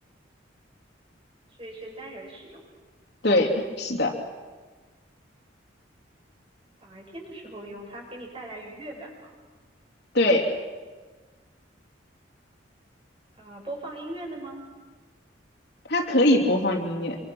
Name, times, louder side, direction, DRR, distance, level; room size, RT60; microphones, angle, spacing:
voice 1, 1.5-2.6 6.8-9.3 13.4-14.6, right 1 dB, 30° right, -1 dB, 6.7 m, -40 dB
voice 2, 3.2-4.1 10.1-10.5 15.9-17.2, left 1 dB, 60° left, -1 dB, 3.2 m, -22 dB
27.5 x 25.0 x 6.3 m, 1.4 s
head